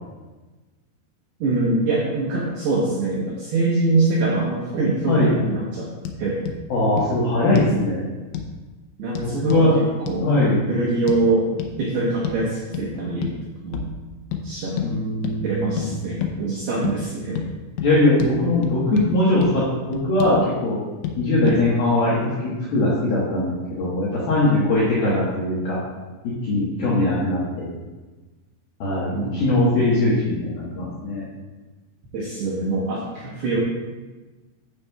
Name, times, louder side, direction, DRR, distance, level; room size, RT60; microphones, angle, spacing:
voice 1, 1.4-5.9 6.2-6.4 7.5-7.6 9.0-10.3 10.7-11.4 11.8-13.3 13.6-13.9 14.4-14.8 15.4-17.4 21.4-21.6 25.0-25.2 29.1-29.4 32.1-33.6, right 3 dB, 70° right, -5 dB, 2.6 m, -24 dB
sound 1, 6.0-6.2 6.5-6.6 7.0-7.1 7.6-7.8 8.3-8.5 9.2-9.7 10.1-10.2 11.1-11.2 11.6-11.7 12.2-12.4 12.7-12.9 13.2-13.4 13.7-13.9 14.3-14.4 14.8-14.9 15.2-15.4 15.8-15.9 16.2-16.4 16.8-17.0 17.4-17.5 17.8-17.9 18.2-18.3 18.6-19.1 19.4-19.5 19.9-20.4 21.0-21.2 21.5-21.6, left 9 dB, 80° left, 3.3 m, -29 dB
voice 2, 6.7-8.1 9.2-9.8 10.2-10.6 14.8-15.9 16.2-16.3 17.8-20.8 21.2-25.8 26.2-27.7 28.8-31.2, left 2 dB, 65° left, -8 dB, 2.6 m, -21 dB
9.9 x 8.5 x 2.4 m, 1.2 s
omnidirectional pair, 5.9 m